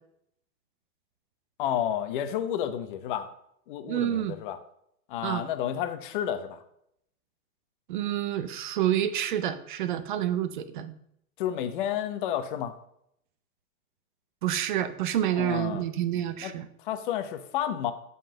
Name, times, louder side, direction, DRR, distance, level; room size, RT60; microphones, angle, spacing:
voice 1, 1.6-3.3 3.7-4.6 5.1-6.6 11.4-12.7 15.3-15.8 16.4-16.5 16.8-17.9, left 10 dB, 35° left, 10 dB, 0.9 m, -31 dB
voice 2, 3.9-4.3 5.2-5.4 7.9-10.9 14.4-16.7, right 11 dB, 35° right, 11 dB, 0.6 m, -28 dB
7.9 x 5.5 x 7.7 m, 0.74 s
hypercardioid pair, 160°, 44 cm